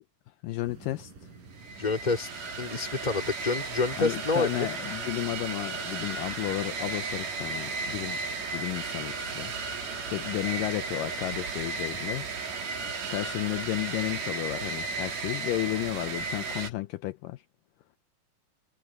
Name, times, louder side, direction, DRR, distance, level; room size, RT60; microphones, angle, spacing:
voice 1, 0.4-1.3 4.0-8.2 8.5-9.5 9.8-12.3 13.1-17.4, left 17 dB, 80° left, 2.1 m, -33 dB
sound 1, 0.6-16.5, right 4 dB, 65° right, 7.2 m, -50 dB
sound 2, 1.6-16.7, right 4 dB, 85° right, 5.5 m, -35 dB
voice 2, 1.8-2.3 2.6-4.7, left 3 dB, 15° left, 2.3 m, -28 dB
omnidirectional pair, 4.2 m